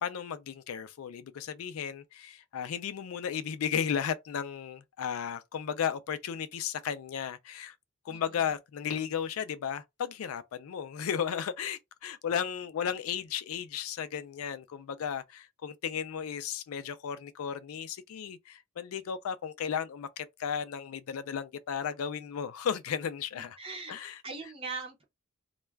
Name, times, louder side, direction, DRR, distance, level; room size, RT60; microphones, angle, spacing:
voice 1, 0.0-7.7 8.1-23.6 23.9-24.2, left 8 dB, 85° left, 0.4 m, -34 dB
voice 2, 8.1-8.4 23.6-23.9 24.2-25.0, right 4 dB, 25° right, 0.7 m, -40 dB
2.3 x 2.2 x 3.2 m
head